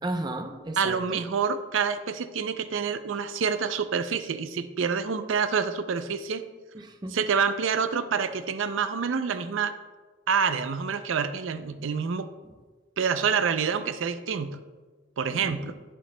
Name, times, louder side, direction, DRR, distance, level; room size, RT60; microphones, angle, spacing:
voice 1, 0.0-1.2 6.7-7.2 11.5-11.7 15.3-15.6, right 1 dB, 20° right, 6 dB, 0.6 m, -34 dB
voice 2, 0.8-6.4 7.1-9.7 10.3-12.3 13.0-14.6 15.2-15.7, right 6 dB, 85° right, 10 dB, 0.5 m, -27 dB
11.5 x 10.0 x 2.2 m, 1.3 s
head